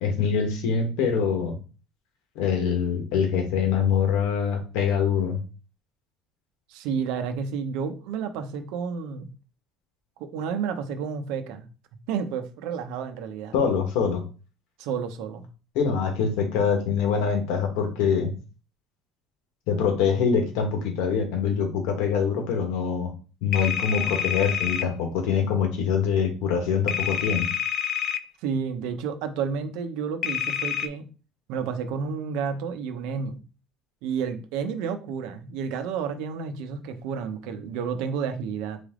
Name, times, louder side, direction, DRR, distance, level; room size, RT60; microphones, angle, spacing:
voice 1, 0.0-1.6 2.3-5.4 13.5-14.2 15.7-18.3 19.7-23.1 23.4-27.5, left 6 dB, 75° left, 4 dB, 1.4 m, -24 dB
voice 2, 6.7-9.3 10.2-11.6 12.1-13.6 14.8-15.4 28.4-31.1 31.5-33.4 34.0-38.8, right 6 dB, 70° right, 8 dB, 0.7 m, -31 dB
sound 1, 23.5-24.9 26.9-28.2 30.2-30.9, left 9 dB, 40° left, 0.3 m, -27 dB
4.1 x 3.4 x 3.7 m, 0.35 s
cardioid pair, 175°, 0 cm